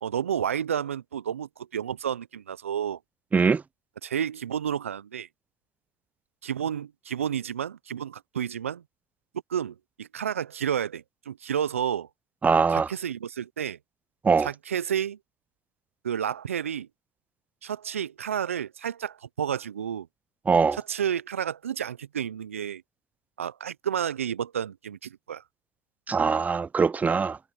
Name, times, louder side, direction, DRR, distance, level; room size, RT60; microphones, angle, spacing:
voice 1, 0.0-3.0 4.0-5.3 6.4-8.8 9.5-12.1 12.7-13.8 14.4-15.2 16.0-16.9 17.6-20.1 20.7-22.8 23.4-25.4, right 9 dB, 90° right, 0.7 m, -31 dB
voice 2, 12.4-12.9 14.2-14.5 20.5-20.8 26.1-27.4, right 5 dB, 20° right, 0.7 m, -22 dB
hypercardioid pair, 75°, 7 cm